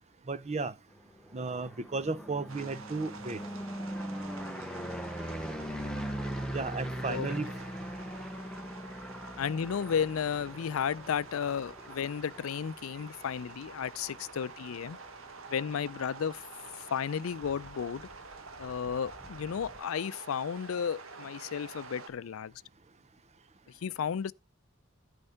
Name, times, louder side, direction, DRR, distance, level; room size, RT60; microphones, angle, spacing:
voice 1, 0.3-0.7 1.3-3.4 6.5-7.5, right 3 dB, 35° right, 0.7 m, -34 dB
sound 1, 1.2-15.1 15.6-16.1 16.3-16.4 16.7-16.8 17.0-19.8, equal, 5° left, 0.8 m, -41 dB
sound 2, 2.5-22.1, right 4 dB, 85° right, 1.5 m, -48 dB
voice 2, 9.4-15.0 15.5-16.4 16.9-18.1 18.6-22.5 23.8-24.3, left 7 dB, 90° left, 0.4 m, -33 dB
10.0 x 5.3 x 5.7 m
head